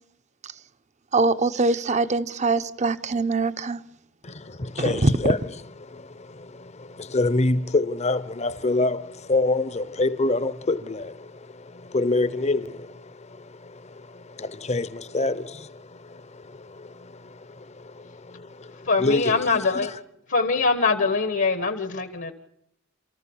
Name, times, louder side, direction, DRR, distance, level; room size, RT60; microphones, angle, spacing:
voice 1, 1.1-3.8 4.8-5.1, right 3 dB, 35° right, 0.8 m, -23 dB
voice 2, 4.2-5.5 5.8-20.0, left 2 dB, 35° left, 0.9 m, -27 dB
voice 3, 18.8-19.9 20.3-22.3, left 4 dB, 60° left, 1.4 m, -23 dB
29.0 x 14.5 x 7.2 m
head